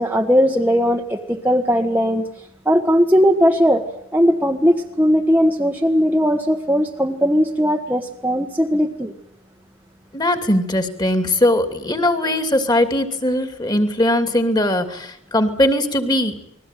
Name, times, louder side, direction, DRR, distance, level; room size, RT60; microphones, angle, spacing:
voice 1, 0.0-2.3 2.6-3.8 4.1-9.1, equal, 10° right, 3 dB, 1.4 m, -18 dB
voice 2, 10.1-16.4, left 1 dB, 20° left, 8 dB, 2.8 m, -20 dB
29.5 x 21.5 x 9.2 m, 0.75 s
head